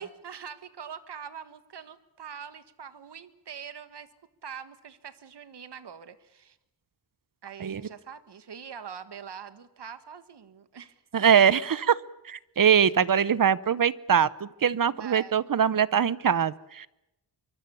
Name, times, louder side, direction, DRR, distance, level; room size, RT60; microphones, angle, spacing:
voice 1, 0.0-4.1 4.4-6.6 7.4-11.0 14.8-15.4, right 7 dB, 70° right, 12 dB, 1.6 m, -43 dB
voice 2, 11.1-12.0 12.2-16.9, right 8 dB, 50° right, 19 dB, 0.8 m, -23 dB
25.0 x 24.5 x 7.0 m, 0.90 s
wide cardioid pair, 145°, 42 cm